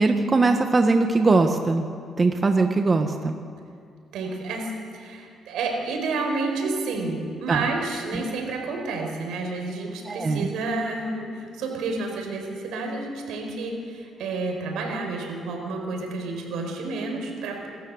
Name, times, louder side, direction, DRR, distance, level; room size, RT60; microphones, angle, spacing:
voice 1, 0.0-1.9 2.2-3.3 7.5-7.7 8.1-8.2 10.1-10.5, right 3 dB, 30° right, 5 dB, 1.3 m, -21 dB
voice 2, 4.1-17.7, right 3 dB, 85° right, 2 dB, 5.0 m, -30 dB
27.0 x 13.5 x 7.9 m, 2.2 s
cardioid pair, 90°, 0 cm